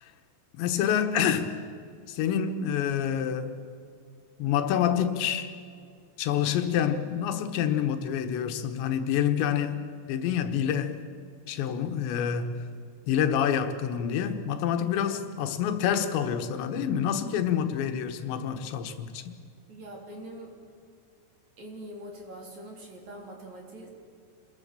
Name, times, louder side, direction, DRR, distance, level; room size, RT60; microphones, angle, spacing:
voice 1, 0.5-1.5 2.1-3.6 4.4-5.5 6.2-9.8 10.1-11.0 11.5-12.7 13.1-19.4, left 9 dB, 90° left, 3.5 m, -27 dB
voice 2, 19.7-20.5 21.6-23.9, right 1 dB, 45° right, 4.3 m, -44 dB
27.0 x 21.5 x 6.8 m
omnidirectional pair, 5.0 m